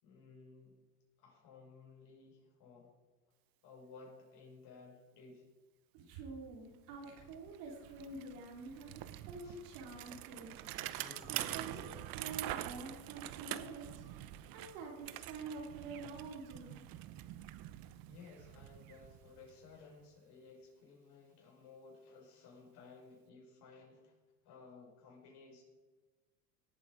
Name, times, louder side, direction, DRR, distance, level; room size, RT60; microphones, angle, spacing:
voice 1, 0.0-0.7 1.2-3.0 3.6-5.4 9.4-9.6 10.8-11.8 18.1-24.1 24.4-25.6, left 4 dB, 55° left, 0 dB, 5.2 m, -57 dB
voice 2, 5.9-8.9 9.3-10.5 11.3-14.0 14.5-16.9, right 3 dB, 75° right, 0 dB, 3.1 m, -47 dB
Bicycle, 6.5-6.6 6.9-19.8, right 14 dB, 50° right, 0.8 m, -46 dB
18.0 x 7.9 x 5.0 m, 1.3 s
supercardioid pair, 105°, 46 cm